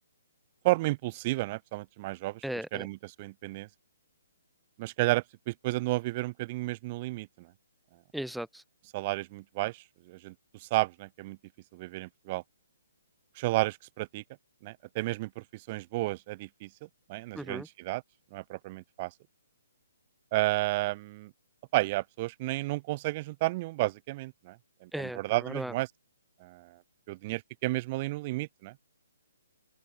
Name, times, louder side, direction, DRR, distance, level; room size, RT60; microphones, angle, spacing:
voice 1, 0.6-2.4 2.7-3.7 4.8-7.3 8.9-10.3 10.7-11.4 11.7-12.4 13.4-14.2 14.6-16.7 17.1-18.0 18.3-19.1 20.3-21.3 21.7-24.6 24.8-25.9 26.4-26.7 27.1-28.7, right 20 dB, 30° right, 0.8 m, -32 dB
voice 2, 2.4-2.9 8.1-8.6 17.3-17.7 24.9-25.7, right 1 dB, ahead, 0.9 m, -37 dB
open air
figure-of-eight pair, 130°, 0 cm